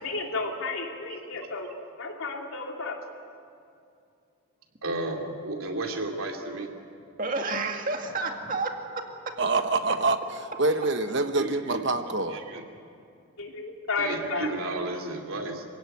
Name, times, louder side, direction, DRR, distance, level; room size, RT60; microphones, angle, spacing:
voice 1, 0.0-1.7 2.0-3.0 13.4-14.8, left 3 dB, 80° left, 1 dB, 3.1 m, -32 dB
voice 2, 4.8-6.7 11.4-11.8 12.3-12.6 14.0-15.6, right 2 dB, 80° right, 2 dB, 2.9 m, -33 dB
voice 3, 7.2-9.3, right 3 dB, 40° right, 3 dB, 2.2 m, -30 dB
voice 4, 9.4-10.2 10.6-12.4, right 3 dB, 55° right, 8 dB, 1.1 m, -25 dB
26.5 x 16.5 x 9.2 m, 2.5 s
head